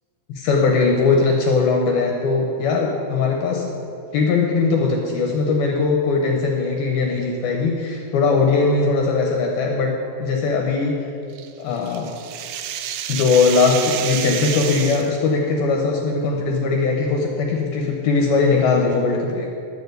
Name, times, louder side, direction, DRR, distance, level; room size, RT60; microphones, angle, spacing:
voice 1, 0.3-3.7 4.1-11.0 11.6-12.1 13.1-19.5, left 4 dB, 75° left, 1 dB, 2.2 m, -20 dB
sound 1, 11.4-15.2, right 10 dB, 80° right, 2.9 m, -29 dB
11.0 x 9.0 x 8.1 m, 2.6 s
omnidirectional pair, 5.8 m